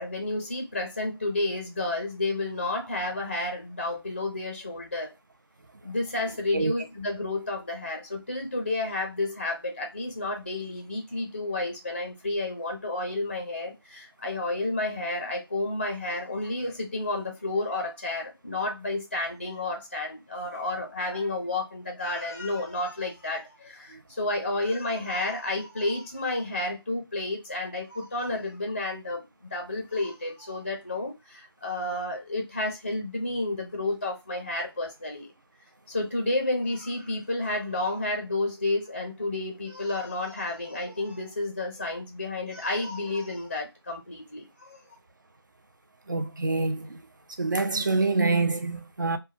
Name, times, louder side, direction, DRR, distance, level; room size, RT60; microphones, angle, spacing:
voice 1, 0.0-5.1 5.8-29.2 29.5-35.3 35.9-44.8, left 2 dB, 25° left, 0.5 m, -31 dB
voice 2, 46.1-47.0 47.4-49.2, right 3 dB, 50° right, 0.5 m, -26 dB
3.3 x 2.2 x 2.5 m
figure-of-eight pair, 170°, 13 cm